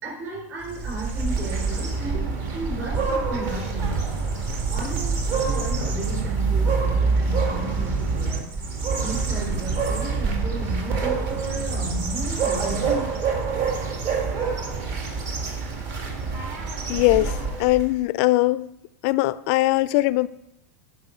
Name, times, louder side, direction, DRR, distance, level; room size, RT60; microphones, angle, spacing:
voice 1, 0.0-2.3 2.5-4.0 4.7-8.5 9.0-13.0, right 1 dB, 30° right, 4.3 m, -34 dB
sound 1, 0.6-17.9, right 4 dB, 45° right, 1.8 m, -26 dB
voice 2, 16.9-18.7 19.0-20.3, left 18 dB, 45° left, 0.3 m, -21 dB
11.5 x 5.2 x 5.5 m
supercardioid pair, 155°, 9 cm